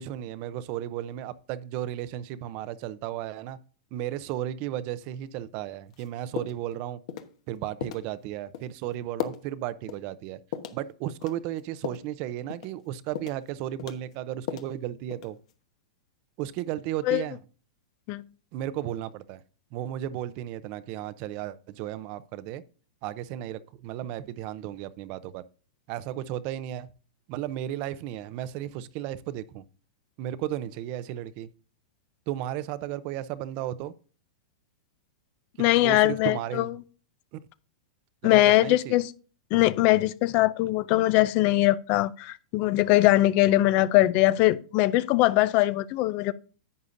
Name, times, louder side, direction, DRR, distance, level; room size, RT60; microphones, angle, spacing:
voice 1, 0.0-3.6 3.9-7.0 7.5-10.4 10.7-15.4 16.4-17.4 18.5-19.4 19.7-22.6 23.0-25.4 25.9-26.9 27.3-29.6 30.2-31.5 32.3-33.9 35.6-36.7 37.3-37.4 38.2-39.0, right 12 dB, 40° right, 0.6 m, -34 dB
sound 1, 5.9-6.1 6.4-6.7 7.1-7.3 7.8-8.1 8.5-8.7 9.2-9.5 9.9-10.0 10.5-10.8 11.2-12.1 12.5-12.8 13.2-13.5 13.8-14.8 15.1-15.5, left 9 dB, 60° left, 1.1 m, -36 dB
voice 2, 35.6-36.7 38.2-39.1 39.5-46.3, left 16 dB, 35° left, 0.5 m, -21 dB
11.0 x 8.2 x 2.6 m
hypercardioid pair, 150°, 4 cm